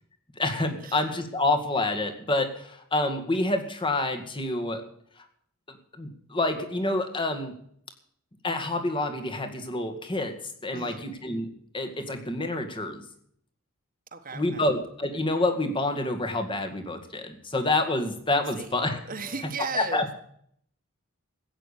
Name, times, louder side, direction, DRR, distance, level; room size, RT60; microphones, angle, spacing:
voice 1, 0.4-4.8 5.7-7.5 8.4-10.4 10.6-11.5 11.7-13.0 14.3-19.0 19.7-20.1, left 2 dB, 20° left, 6 dB, 2.0 m, -28 dB
voice 2, 10.7-11.1 14.1-14.6 18.6-18.8 19.1-20.0, right 4 dB, 40° right, 6 dB, 1.4 m, -36 dB
15.0 x 8.9 x 8.4 m, 0.66 s
head